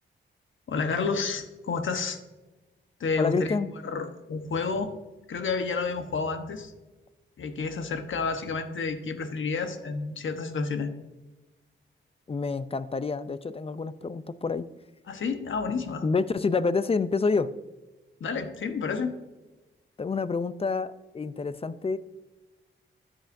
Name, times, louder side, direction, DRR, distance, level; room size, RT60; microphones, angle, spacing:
voice 1, 0.7-2.2 3.0-3.6 3.8-4.9 5.3-6.7 7.4-10.9 15.1-16.0 18.2-19.1, left 4 dB, 70° left, 8 dB, 1.1 m, -30 dB
voice 2, 3.2-3.7 12.3-14.7 16.0-17.5 20.0-22.0, left 4 dB, 30° left, 15 dB, 0.5 m, -28 dB
13.0 x 8.9 x 2.6 m, 1.1 s
cardioid pair, 85°, 21 cm